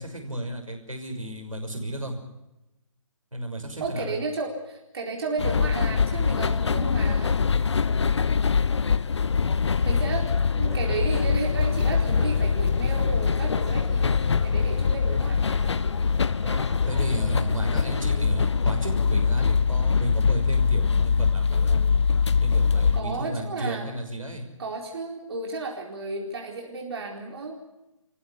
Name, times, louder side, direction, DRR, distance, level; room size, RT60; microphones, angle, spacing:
voice 1, 0.0-2.2 3.3-4.2 8.8-9.0 16.9-21.8 22.4-24.4, right 1 dB, 85° right, 3 dB, 6.2 m, -32 dB
voice 2, 3.8-7.4 9.8-10.3 10.6-15.8 22.9-23.8 24.6-27.6, right 3 dB, 50° right, 0 dB, 4.4 m, -33 dB
sound 1, 5.4-23.0, left 5 dB, 55° left, 1.0 m, -23 dB
sound 2, 10.6-18.2, right 3 dB, 65° right, 3.5 m, -45 dB
26.5 x 15.5 x 8.5 m, 0.94 s
figure-of-eight pair, 145°, 17 cm